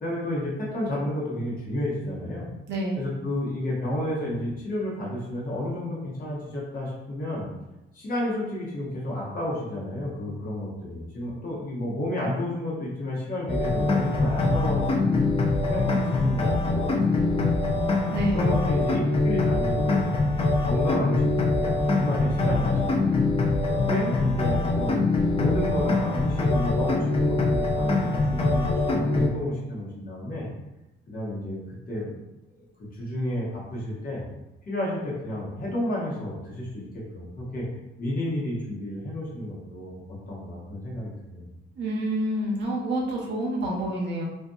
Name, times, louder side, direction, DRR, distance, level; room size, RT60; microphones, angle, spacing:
voice 1, 0.0-2.5 3.0-7.5 7.9-17.8 18.3-20.1 20.6-23.1 23.7-30.5 31.1-32.1 32.5-32.6 32.9-34.2 34.7-37.7 38.0-40.0 40.3-41.5, left 1 dB, 45° left, -5 dB, 1.1 m, -31 dB
voice 2, 2.7-3.1 18.1-18.5 41.8-44.2, right 1 dB, 60° right, -3 dB, 0.8 m, -28 dB
sound 1, 13.5-29.3, left 2 dB, 30° left, 0.4 m, -23 dB
2.6 x 2.5 x 2.3 m, 0.95 s
cardioid pair, 90°, 20 cm